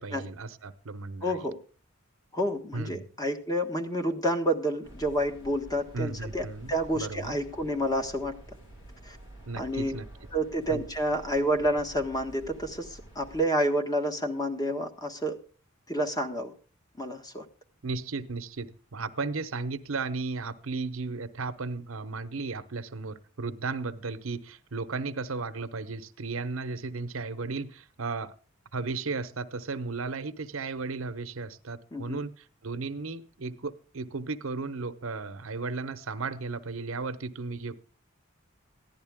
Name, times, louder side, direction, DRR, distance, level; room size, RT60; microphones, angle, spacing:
voice 1, 0.0-1.3 2.7-3.1 5.9-7.4 9.5-10.0 10.7-10.9 17.8-28.3 28.7-32.3 32.6-37.8, right 3 dB, 75° right, 11 dB, 0.9 m, -35 dB
voice 2, 1.2-1.6 2.3-8.4 9.0-9.2 9.6-10.0 10.3-15.4 15.9-16.5 17.0-17.4 31.9-32.2, equal, 20° left, 5 dB, 1.5 m, -29 dB
sound 1, 4.8-13.4, right 1 dB, 60° left, 3.6 m, -49 dB
15.0 x 11.0 x 3.6 m, 0.38 s
head